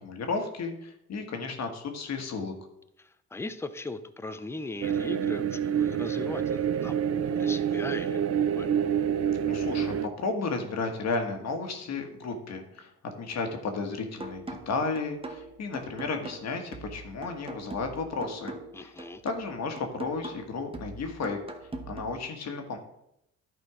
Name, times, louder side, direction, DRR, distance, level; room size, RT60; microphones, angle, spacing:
voice 1, 0.0-2.5 9.5-18.9 19.2-21.4 21.9-22.8, left 4 dB, 60° left, 5 dB, 1.5 m, -33 dB
voice 2, 3.0-8.7 18.7-19.2, left 3 dB, 10° left, 11 dB, 0.5 m, -39 dB
sound 1, 4.8-10.1, right 8 dB, 55° right, 0.6 m, -27 dB
sound 2, 14.2-22.2, right 2 dB, 20° right, 0.9 m, -42 dB
11.0 x 4.3 x 4.9 m, 0.79 s
cardioid pair, 90°, 30 cm